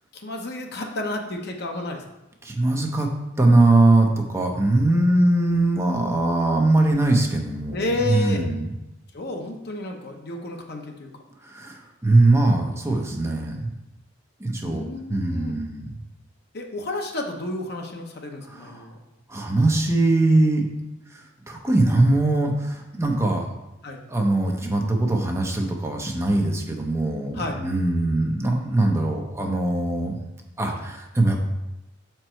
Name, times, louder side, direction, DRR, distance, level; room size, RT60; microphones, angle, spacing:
voice 1, 0.1-2.0 7.7-8.4 9.1-11.1 14.6-15.6 16.5-19.0 23.8-24.0 27.3-27.6, left 2 dB, 55° left, 2 dB, 0.9 m, -31 dB
voice 2, 2.4-3.1 3.4-8.7 11.4-13.7 14.4-14.8 15.1-16.0 18.5-18.8 19.3-20.7 21.5-23.5 24.1-30.2 30.6-31.5, right 2 dB, 15° right, 1 dB, 0.7 m, -21 dB
6.5 x 4.5 x 4.4 m, 0.95 s
head